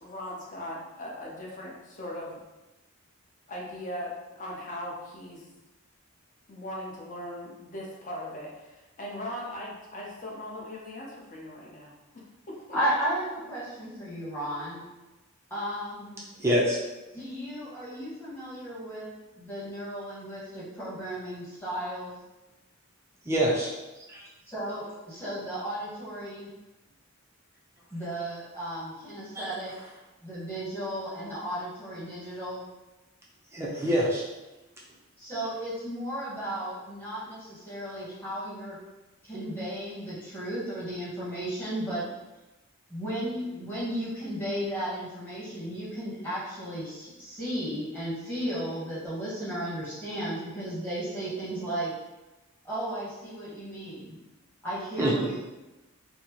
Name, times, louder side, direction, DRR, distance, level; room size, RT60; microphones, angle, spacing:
voice 1, 0.0-2.4 3.5-5.5 6.5-12.8, left 1 dB, 35° left, -4 dB, 0.7 m, -39 dB
voice 2, 12.7-14.8 15.5-16.2 17.1-19.1 19.4-22.1 24.5-26.5 27.9-29.7 30.2-32.6 35.2-38.8 39.2-42.0 42.9-51.9 52.6-54.2 54.6-55.4, right 1 dB, 10° left, -9 dB, 1.1 m, -34 dB
voice 3, 16.4-16.8 23.2-23.7 24.1-24.2 29.3-29.5 33.5-34.2 35.3-35.4 55.0-55.1, equal, 10° right, -5 dB, 0.4 m, -25 dB
4.1 x 2.0 x 2.8 m, 1.1 s
head